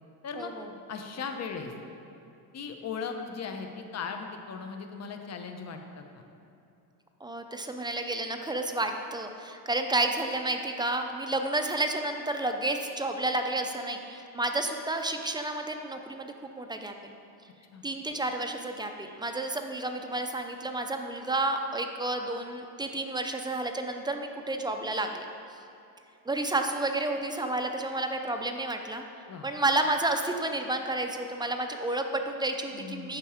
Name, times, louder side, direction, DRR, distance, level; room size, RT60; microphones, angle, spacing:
voice 1, 0.3-0.7 7.2-17.1 17.8-25.3 26.3-29.0 29.4-33.2, right 2 dB, 10° right, 5 dB, 0.3 m, -31 dB
voice 2, 0.9-1.7 2.5-6.2 17.7-17.8 29.3-29.5 32.7-33.2, left 5 dB, 35° left, 5 dB, 0.9 m, -38 dB
9.0 x 6.0 x 5.0 m, 2.6 s
cardioid pair, 120°, 44 cm